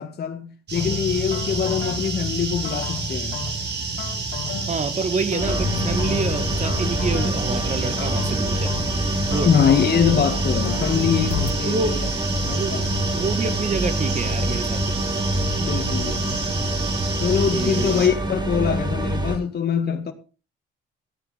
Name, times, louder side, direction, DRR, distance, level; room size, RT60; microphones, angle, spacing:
voice 1, 0.0-3.4 9.4-12.1 12.4-12.8 15.6-16.4 17.2-20.1, left 7 dB, 55° left, 2.1 m, -23 dB
sound 1, 0.7-11.5, left 5 dB, 90° left, 2.3 m, -32 dB
sound 2, 0.7-18.1, right 4 dB, 60° right, 5.6 m, -30 dB
voice 2, 4.7-8.7 9.3-9.5 11.6-12.0 12.5-12.8 13.1-15.1 17.5-18.0, right 4 dB, 35° right, 1.9 m, -27 dB
sound 3, 5.4-19.4, right 1 dB, 20° right, 3.1 m, -26 dB
15.0 x 9.2 x 5.1 m
cardioid pair, 90°, 20 cm